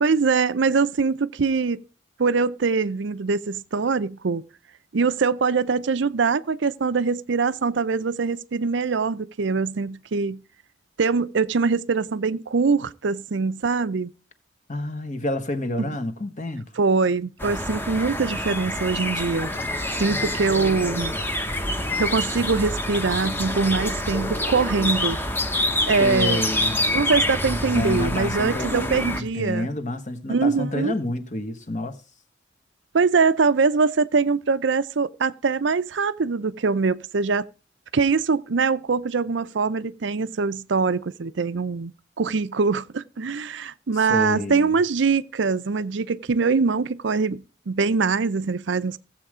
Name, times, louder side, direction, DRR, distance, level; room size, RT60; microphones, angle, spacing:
voice 1, 0.0-1.8 2.2-4.4 4.9-10.4 11.0-14.1 15.8-15.9 16.8-19.5 20.0-21.2 22.0-25.2 25.9-26.4 26.9-29.7 30.3-30.9 32.9-37.5 37.9-41.9 42.2-49.0, right 4 dB, 65° right, 0.5 m, -23 dB
voice 2, 14.7-16.6 20.0-20.9 26.0-26.8 27.7-32.0 43.9-44.7, left 1 dB, 40° left, 1.3 m, -29 dB
sound 1, 17.4-29.2, left 1 dB, 10° left, 1.0 m, -27 dB
15.5 x 7.6 x 4.9 m
head